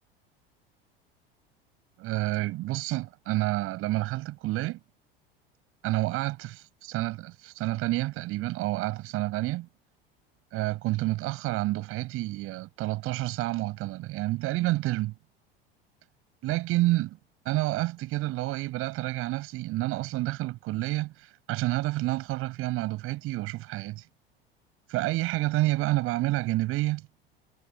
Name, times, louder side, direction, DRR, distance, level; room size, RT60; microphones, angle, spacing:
voice 1, 2.0-4.8 5.8-9.7 10.5-15.1 16.4-17.2 17.5-24.1 24.9-27.1, right 18 dB, 45° right, 5.4 m, -29 dB
figure-of-eight pair, 75°, 30 cm